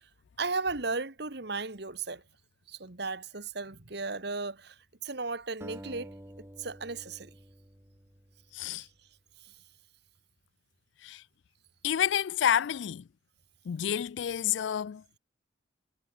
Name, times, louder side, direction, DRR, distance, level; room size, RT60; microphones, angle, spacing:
voice 1, 0.4-2.2 2.7-6.1 6.4-7.3 8.8-8.9 9.4-9.5, right 3 dB, 55° right, 1.7 m, -35 dB
sound 1, 5.6-8.8, equal, 10° right, 2.3 m, -49 dB
voice 2, 8.5-8.9 11.0-11.2 11.8-13.0 13.7-15.2, left 9 dB, 65° left, 0.3 m, -29 dB
head